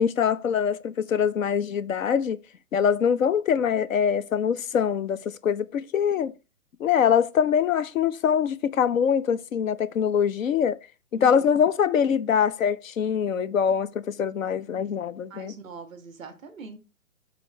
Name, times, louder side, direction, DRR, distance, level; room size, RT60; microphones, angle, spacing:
voice 1, 0.0-2.4 2.7-6.3 6.8-10.8 11.1-15.6, left 8 dB, 65° left, 0.6 m, -23 dB
voice 2, 15.3-16.8, right 4 dB, ahead, 0.5 m, -42 dB
7.0 x 3.8 x 4.3 m
hypercardioid pair, 155°, 44 cm